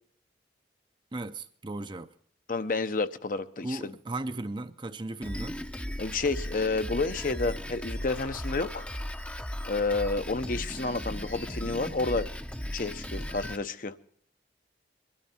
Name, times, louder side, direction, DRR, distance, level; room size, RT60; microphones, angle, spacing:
voice 1, 1.1-2.1 3.6-5.6, right 2 dB, 25° right, 0.6 m, -36 dB
voice 2, 2.5-4.0 6.0-8.9 9.6-12.3 12.7-13.9, left 3 dB, 45° left, 0.8 m, -30 dB
Drum kit, 5.2-13.6, equal, 5° left, 0.7 m, -36 dB
22.5 x 12.5 x 4.3 m
head